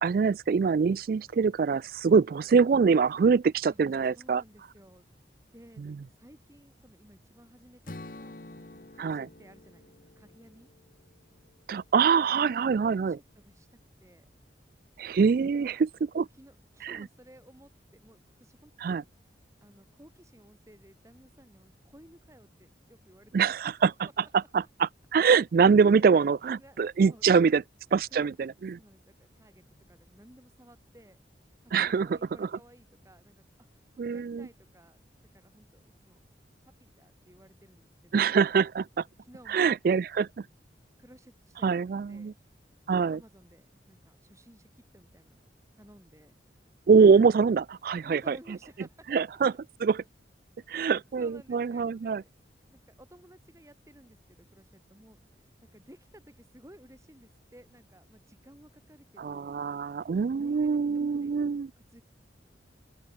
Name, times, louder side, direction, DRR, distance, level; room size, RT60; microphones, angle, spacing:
voice 1, 0.0-4.4 5.8-6.0 9.0-9.2 11.7-13.2 15.0-15.9 16.1-16.2 18.8-19.0 23.3-23.9 24.5-27.6 27.9-28.8 31.7-32.1 32.4-32.5 34.0-34.5 38.1-39.0 39.5-40.3 41.6-42.3 42.9-43.2 46.9-48.4 49.1-49.5 49.8-50.0 50.7-52.2 59.2-61.7, right 5 dB, 50° right, 0.3 m, -24 dB
voice 2, 3.7-5.0 5.3-8.4 8.7-10.7 12.3-14.3 15.4-15.8 16.1-19.1 19.6-23.5 23.8-23.9 25.9-26.1 26.6-27.5 28.1-28.3 28.7-31.2 31.6-33.4 33.7-36.2 36.6-38.3 39.2-39.8 41.0-41.7 42.1-42.3 42.9-46.3 48.0-49.1 50.7-52.3 52.7-55.2 55.7-59.5 60.2-61.3 61.8-62.0, equal, 15° right, 3.3 m, -56 dB
Strum, 7.8-12.0, left 2 dB, 50° left, 1.3 m, -48 dB
open air
head